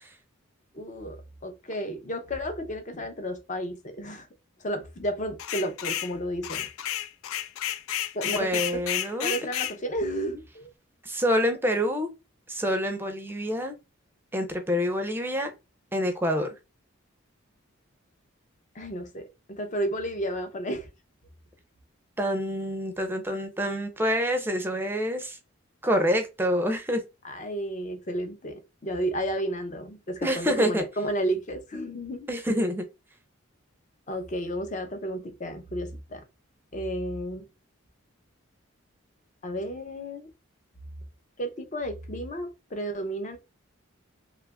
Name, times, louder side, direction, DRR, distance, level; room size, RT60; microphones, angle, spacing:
voice 1, 0.7-1.2 1.4-4.3 4.6-6.7 8.1-8.8 9.2-10.7 18.7-20.9 27.2-32.3 34.1-36.2 36.7-37.4 39.4-40.3 41.4-43.4, equal, 35° left, 0.6 m, -32 dB
sound 1, 5.4-6.1 6.4-9.8, left 11 dB, 80° left, 0.3 m, -31 dB
voice 2, 8.2-9.3 11.0-12.1 12.5-13.7 14.3-15.5 15.9-16.5 22.2-25.4 25.8-27.0 30.2-30.8 32.3-32.9, equal, 10° right, 0.5 m, -27 dB
2.9 x 2.4 x 3.3 m
head